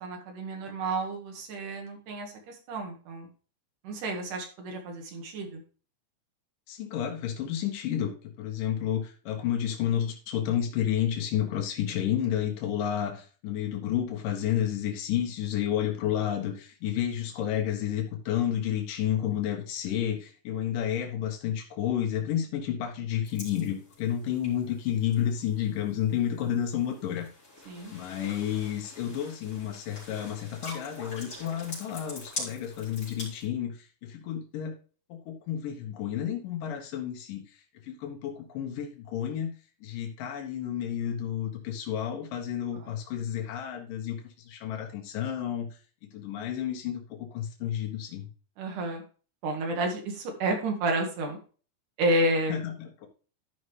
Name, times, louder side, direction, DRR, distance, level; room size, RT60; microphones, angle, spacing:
voice 1, 0.0-3.3 3.8-5.6 27.7-27.9 42.8-42.9 48.6-49.0 49.4-51.4 52.0-52.6, right 1 dB, 75° right, 3 dB, 3.2 m, -30 dB
voice 2, 6.7-8.1 8.4-27.3 27.9-34.8 35.1-37.4 37.8-39.5 39.8-45.7 46.1-48.3 52.5-53.1, left 10 dB, 90° left, 3 dB, 2.8 m, -31 dB
sound 1, 23.2-33.5, left 2 dB, 30° left, 3.9 m, -44 dB
12.5 x 5.4 x 3.2 m, 0.39 s
omnidirectional pair, 3.7 m